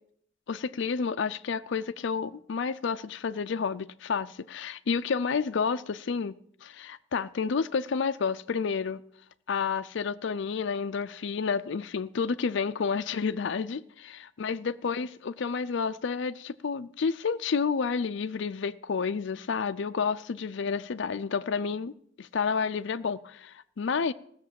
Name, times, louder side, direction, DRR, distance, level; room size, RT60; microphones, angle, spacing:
voice 1, 0.5-9.0 9.5-21.9 22.2-24.1, left 5 dB, 70° left, 0.5 m, -30 dB
15.5 x 6.7 x 7.5 m
head